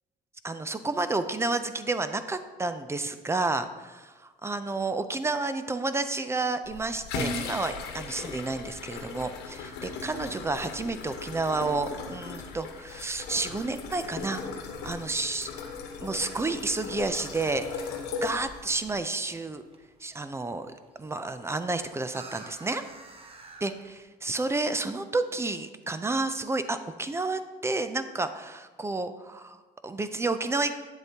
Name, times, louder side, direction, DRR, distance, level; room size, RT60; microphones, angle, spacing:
voice 1, 0.4-14.4 14.8-15.5 16.0-17.9 18.2-19.6 20.0-22.8 23.6-30.7, right 3 dB, 15° right, 10 dB, 0.4 m, -30 dB
sound 1, 6.6-19.0, left 4 dB, 80° left, 1.1 m, -37 dB
sound 2, 17.9-24.0, right 3 dB, 35° right, 0.9 m, -52 dB
8.9 x 7.7 x 2.8 m, 1.3 s
cardioid pair, 110°, 17 cm